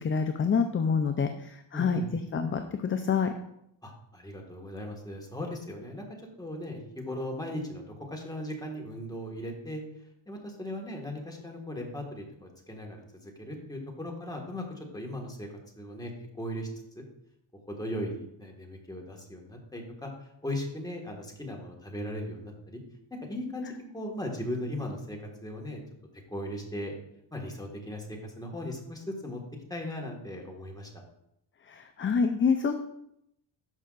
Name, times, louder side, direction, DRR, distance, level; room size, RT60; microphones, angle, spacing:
voice 1, 0.0-3.3 31.6-32.7, left 5 dB, 25° left, 7 dB, 0.5 m, -27 dB
voice 2, 1.7-2.0 3.8-6.0 6.4-9.8 10.3-15.5 15.8-16.7 16.9-17.0 17.7-20.1 20.4-22.8 23.2-25.8 26.3-26.9 27.3-29.4 29.7-30.9, left 1 dB, 10° left, 0 dB, 1.7 m, -38 dB
12.0 x 5.6 x 2.5 m, 0.78 s
cardioid pair, 100°, 48 cm